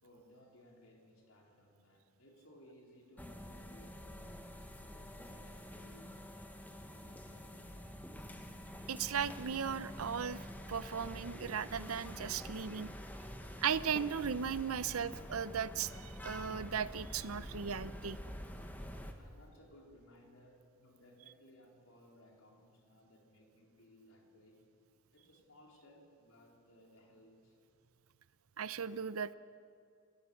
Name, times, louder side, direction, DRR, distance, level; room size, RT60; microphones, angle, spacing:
voice 1, 0.0-7.8 19.2-24.7 25.1-27.6, left 1 dB, 70° left, 0 dB, 4.3 m, -62 dB
sound 1, 3.2-19.1, equal, 10° left, 1.4 m, -47 dB
voice 2, 8.9-10.4 10.7-12.9 13.6-18.2 28.6-29.3, right 7 dB, 85° right, 16 dB, 0.7 m, -37 dB
29.0 x 15.5 x 7.2 m, 2.3 s
head